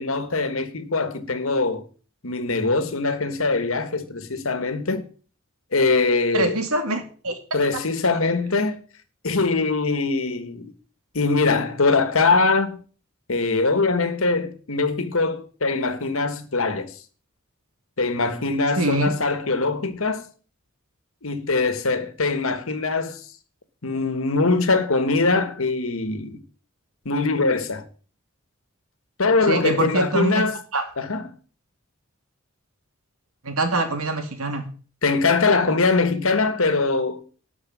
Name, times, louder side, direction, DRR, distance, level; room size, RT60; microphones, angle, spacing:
voice 1, 0.0-1.9 2.2-5.1 5.7-6.6 7.5-8.8 9.2-10.7 11.1-12.8 13.3-16.9 18.0-20.3 21.2-23.3 23.8-26.4 27.0-27.9 29.2-30.6 31.0-31.3 35.0-37.2, left 3 dB, 75° left, 1.4 m, -22 dB
voice 2, 6.3-7.4 7.7-7.8 18.8-19.1 29.5-30.4 30.7-30.8 33.4-34.7, right 2 dB, 85° right, 2.4 m, -24 dB
12.5 x 4.9 x 8.3 m
head